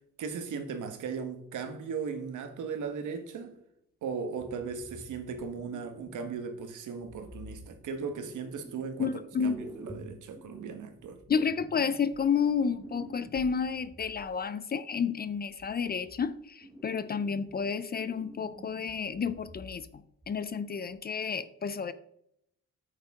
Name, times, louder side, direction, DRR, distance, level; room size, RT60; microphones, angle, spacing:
voice 1, 0.2-3.6 4.0-9.1 9.4-11.2, right 5 dB, 70° right, 1.4 m, -37 dB
sound 1, 4.4-6.6 7.0-9.0 9.3-14.3 15.3-16.3 16.6-17.7 18.0-20.0 20.2-20.4 20.9-21.0, equal, 10° right, 1.1 m, -50 dB
voice 2, 9.0-9.7 11.3-19.9 20.3-21.9, left 6 dB, 30° left, 0.5 m, -31 dB
8.9 x 6.7 x 3.6 m
cardioid pair, 150°, 31 cm